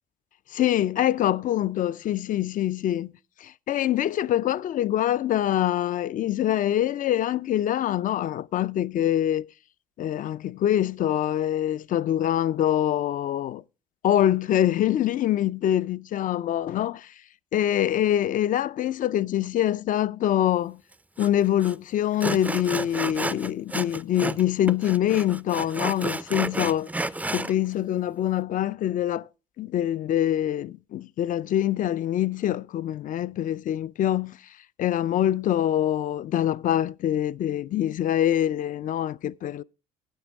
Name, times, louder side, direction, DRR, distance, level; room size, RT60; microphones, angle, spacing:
voice 1, 0.5-3.1 3.4-9.4 10.0-13.6 14.0-17.1 17.5-20.8 21.2-26.9 27.3-29.3 29.6-34.4 34.8-39.6, left 11 dB, 50° left, 0.4 m, -25 dB
Sawing, 21.2-21.3 21.6-21.7 22.2-24.4 24.7-27.5, right 2 dB, 10° right, 0.4 m, -31 dB
12.5 x 9.2 x 3.4 m
supercardioid pair, 65°, 17 cm